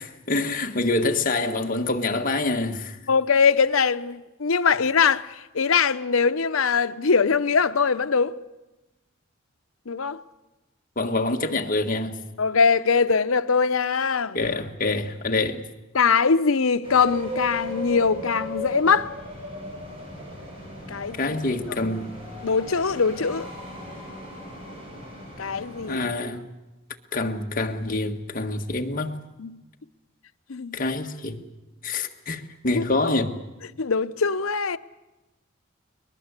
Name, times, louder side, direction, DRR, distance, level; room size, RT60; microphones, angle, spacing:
voice 1, 0.0-3.0 11.0-12.1 14.3-15.6 21.2-22.1 25.9-26.4 27.1-29.1 30.7-31.4 31.8-33.3, left 2 dB, 40° left, 1.6 m, -26 dB
voice 2, 3.1-8.3 9.9-10.2 12.4-14.4 15.9-19.1 20.9-21.3 21.8-21.9 22.4-23.5 25.4-26.0 29.4-29.6 30.5-30.8 32.7-32.8 33.8-34.8, left 5 dB, 80° left, 0.8 m, -22 dB
sound 1, 16.8-26.1, left 1 dB, 25° right, 7.3 m, -37 dB
22.5 x 21.0 x 8.2 m
head